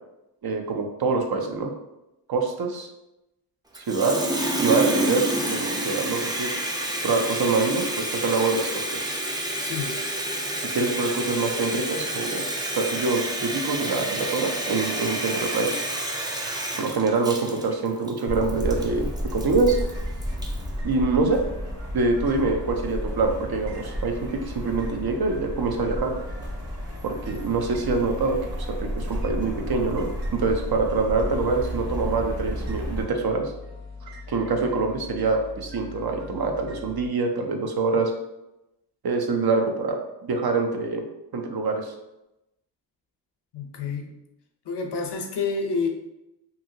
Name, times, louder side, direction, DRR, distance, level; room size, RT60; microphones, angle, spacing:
voice 1, 0.4-1.7 2.3-2.9 3.8-4.2 4.6-6.6 7.0-9.1 10.6-12.4 12.7-15.8 16.8-19.8 20.8-21.4 21.9-26.2 27.0-28.4 28.8-33.5 34.3-38.1 39.0-41.0 41.3-41.9, right 3 dB, 60° right, 3 dB, 0.6 m, -25 dB
Water tap faucet, 3.7-20.7, right 1 dB, 10° right, 0.4 m, -29 dB
voice 2, 9.6-10.0 43.5-44.2 44.7-45.9, left 4 dB, 70° left, 4 dB, 0.6 m, -28 dB
sound 1, 18.3-33.1, equal, 35° right, 1.0 m, -32 dB
sound 2, 18.8-37.1, left 3 dB, 85° right, 1.2 m, -41 dB
2.7 x 2.7 x 2.7 m, 0.91 s
cardioid pair, 55°, 43 cm